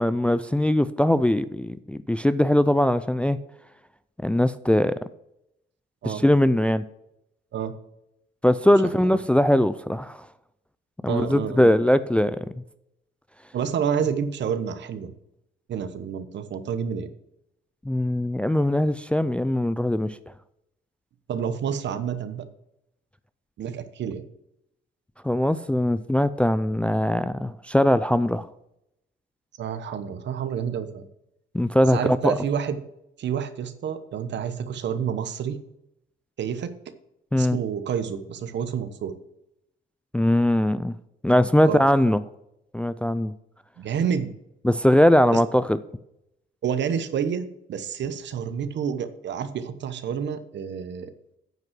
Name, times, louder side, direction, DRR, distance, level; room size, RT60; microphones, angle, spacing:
voice 1, 0.0-3.4 4.2-5.0 6.0-6.8 8.4-10.3 11.0-12.6 17.9-20.2 25.2-28.5 31.5-32.3 37.3-37.6 40.1-40.9 41.2-42.2 42.7-43.3 44.6-45.8, left 1 dB, 5° left, 0.4 m, -21 dB
voice 2, 8.7-9.1 11.1-11.7 13.5-15.1 15.7-17.1 21.3-22.4 23.6-24.2 29.6-31.0 31.9-32.8 33.2-35.6 36.4-36.7 37.3-39.1 41.6-41.8 43.8-44.3 45.3-45.4 46.6-51.1, right 7 dB, 65° right, 1.0 m, -29 dB
9.2 x 5.4 x 6.1 m
cardioid pair, 90°, 20 cm